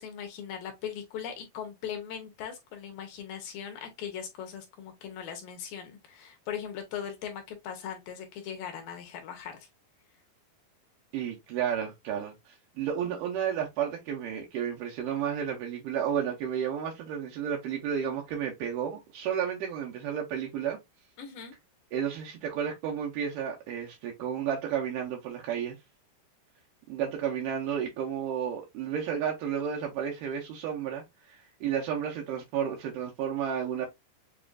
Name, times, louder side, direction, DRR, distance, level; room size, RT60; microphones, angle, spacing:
voice 1, 0.0-9.7 21.2-21.5, left 8 dB, 75° left, 2.3 m, -39 dB
voice 2, 11.1-20.8 21.9-25.8 26.9-33.9, right 8 dB, 85° right, 1.9 m, -32 dB
7.2 x 2.5 x 2.4 m
omnidirectional pair, 4.9 m